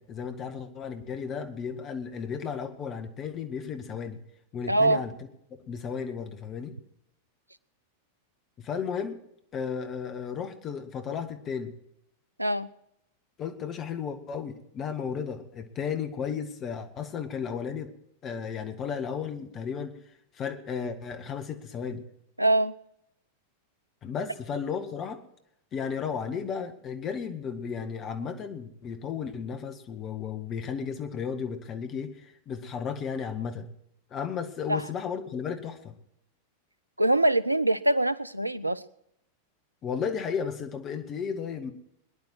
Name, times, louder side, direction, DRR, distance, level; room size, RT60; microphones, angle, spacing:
voice 1, 0.0-4.2 4.5-5.1 5.7-6.7 8.6-9.2 9.5-11.8 13.4-17.9 18.2-19.9 20.3-22.1 24.0-25.2 25.7-33.7 34.1-35.9 39.8-41.7, left 6 dB, 30° left, 7 dB, 1.7 m, -34 dB
voice 2, 4.7-5.0 12.4-12.7 22.4-22.7 34.7-34.9 37.0-38.8, right 1 dB, 85° right, 17 dB, 0.6 m, -23 dB
22.0 x 10.5 x 4.5 m, 0.78 s
figure-of-eight pair, 90°, 0 cm